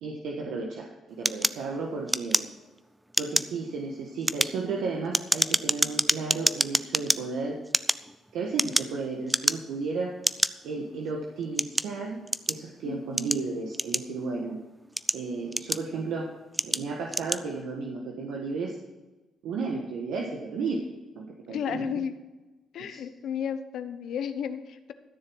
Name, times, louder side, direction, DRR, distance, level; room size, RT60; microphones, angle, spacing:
voice 1, 0.0-2.5 3.2-7.6 8.3-10.1 10.6-12.2 12.5-14.6 15.1-16.3 16.6-18.8 19.4-20.8 21.1-22.0 22.9-23.0, right 4 dB, 85° right, 0 dB, 1.4 m, -33 dB
sound 1, 1.3-2.8 3.1-3.6 4.1-7.2 7.7-9.0 9.3-9.8 10.2-10.5 11.2-12.7 13.2-14.3 14.8-16.0 16.5-16.8 17.1-17.4, right 1 dB, 10° right, 0.4 m, -27 dB
voice 2, 12.8-13.2 21.5-22.2 22.7-24.9, left 8 dB, 70° left, 10 dB, 0.9 m, -33 dB
13.0 x 7.0 x 6.2 m, 1.1 s
cardioid pair, 90°, 0 cm